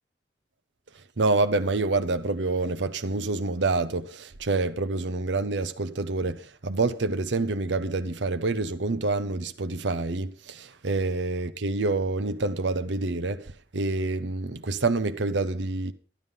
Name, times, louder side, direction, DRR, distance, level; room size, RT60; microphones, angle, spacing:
voice 1, 1.2-15.9, right 3 dB, 80° right, 0.9 m, -27 dB
12.5 x 11.5 x 5.4 m
head